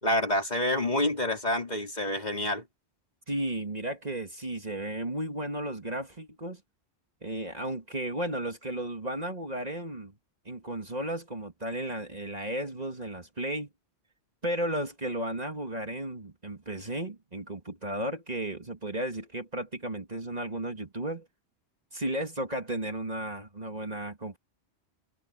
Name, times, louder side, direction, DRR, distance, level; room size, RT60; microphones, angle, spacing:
voice 1, 0.0-2.6, left 1 dB, 40° left, 4.0 m, -27 dB
voice 2, 3.3-6.6 7.2-10.1 10.5-13.7 14.4-21.3 21.9-24.4, right 1 dB, 40° right, 2.3 m, -34 dB
omnidirectional pair, 1.1 m